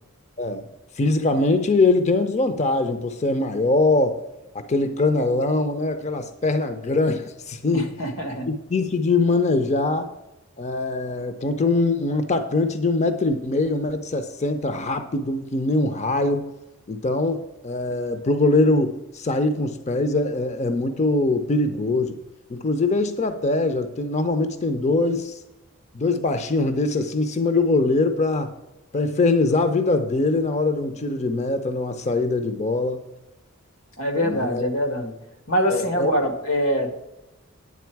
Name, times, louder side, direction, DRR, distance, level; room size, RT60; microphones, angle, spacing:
voice 1, 1.0-4.2 4.7-7.9 8.5-10.1 10.6-16.5 16.9-22.2 22.5-25.4 25.9-28.5 28.9-33.0 34.2-34.7 35.7-36.1, left 2 dB, 35° left, 9 dB, 0.5 m, -22 dB
voice 2, 7.7-8.5 34.0-35.1 35.5-36.9, equal, 90° left, 5 dB, 1.6 m, -24 dB
9.5 x 7.6 x 4.6 m, 0.96 s
head